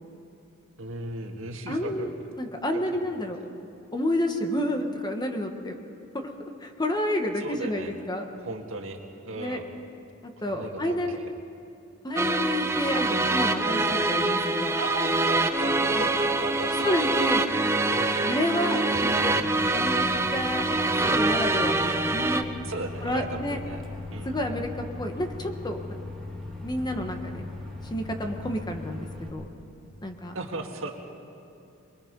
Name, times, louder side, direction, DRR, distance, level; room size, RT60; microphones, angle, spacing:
voice 1, 0.8-2.1 2.7-2.8 7.4-7.9 8.4-9.6 10.5-11.3 14.8-17.2 17.9-18.2 22.6-23.8 24.1-24.6 30.3-30.9, right 2 dB, 70° right, 2 dB, 2.0 m, -37 dB
voice 2, 1.7-2.1 2.4-3.4 3.9-5.7 6.1-6.3 6.6-8.2 9.4-9.6 10.4-11.2 12.0-14.7 15.9-16.0 16.8-17.5 18.2-19.4 19.7-20.1 20.3-22.5 23.0-23.6 24.2-26.0 26.6-27.4 27.9-29.5 30.0-30.3, left 1 dB, 20° left, 4 dB, 1.4 m, -30 dB
sound 1, 12.2-22.4, right 2 dB, 15° right, 0.8 m, -25 dB
Microwave oven, 18.9-29.3, left 2 dB, ahead, 3.1 m, -39 dB
23.5 x 22.0 x 5.4 m, 2.6 s
head